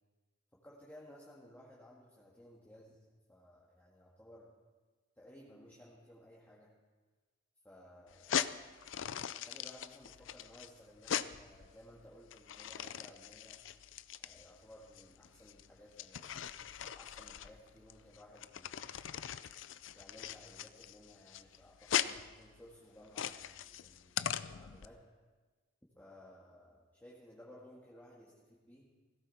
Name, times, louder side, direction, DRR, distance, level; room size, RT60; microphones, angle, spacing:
voice 1, 0.6-3.0 3.3-4.5 5.2-6.7 7.6-8.5 9.3-13.6 14.2-19.0 19.9-25.0 26.0-28.9, equal, 10° left, -6 dB, 1.9 m, -58 dB
sound 1, 8.1-24.9, left 9 dB, 70° left, 0.5 m, -40 dB
17.0 x 16.0 x 4.2 m, 1.3 s
head